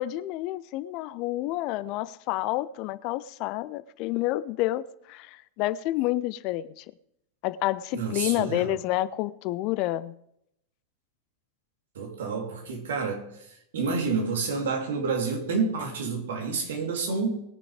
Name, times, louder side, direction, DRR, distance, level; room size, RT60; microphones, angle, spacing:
voice 1, 0.0-6.8 7.4-10.1, left 16 dB, 40° left, 0.5 m, -29 dB
voice 2, 7.9-8.7 11.9-13.3 13.7-17.4, right 4 dB, 60° right, 3.2 m, -29 dB
20.5 x 7.1 x 5.0 m
figure-of-eight pair, 90°, 0 cm